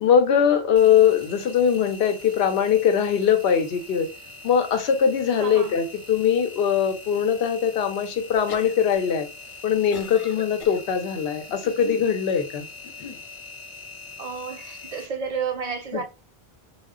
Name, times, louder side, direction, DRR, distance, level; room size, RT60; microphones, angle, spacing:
voice 1, 0.0-4.1 4.4-9.3 9.6-12.6 15.9-16.0, left 8 dB, 80° left, 0.8 m, -21 dB
Engine, 0.8-15.1, left 3 dB, 35° left, 0.8 m, -43 dB
voice 2, 5.4-5.7 14.2-16.0, right 6 dB, 50° right, 0.5 m, -31 dB
sound 1, 8.3-9.1 9.4-10.8 11.4-12.1 12.8-13.2, left 6 dB, 55° left, 0.4 m, -40 dB
2.1 x 2.1 x 3.5 m
omnidirectional pair, 1.0 m